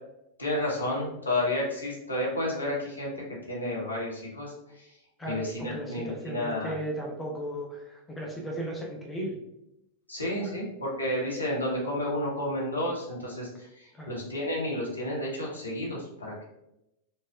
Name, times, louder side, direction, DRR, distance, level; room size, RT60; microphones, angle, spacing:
voice 1, 0.4-4.9 5.2-6.8 10.1-16.4, left 1 dB, 85° left, -5 dB, 1.0 m, -31 dB
voice 2, 5.2-9.4 10.4-10.5 13.9-14.1, right 1 dB, 15° left, 0 dB, 0.7 m, -36 dB
4.1 x 2.1 x 2.4 m, 0.84 s
figure-of-eight pair, 90°, 0 cm